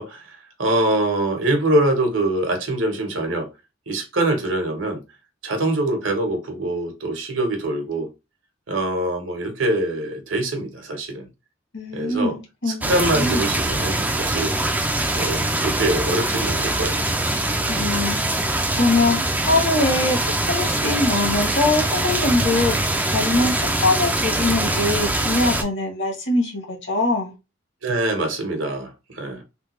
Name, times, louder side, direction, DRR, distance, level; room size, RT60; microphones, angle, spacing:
voice 1, 0.0-3.5 3.9-5.0 5.4-8.1 8.7-11.3 11.9-12.4 12.7-14.6 15.2-17.0 27.8-29.4, right 1 dB, 70° right, 1.1 m, -24 dB
voice 2, 11.7-13.5 17.7-18.5 18.8-19.2 19.5-27.3, left 2 dB, 60° left, 1.3 m, -23 dB
sound 1, 12.8-25.6, right 1 dB, 10° right, 0.4 m, -23 dB
3.5 x 2.4 x 3.1 m
head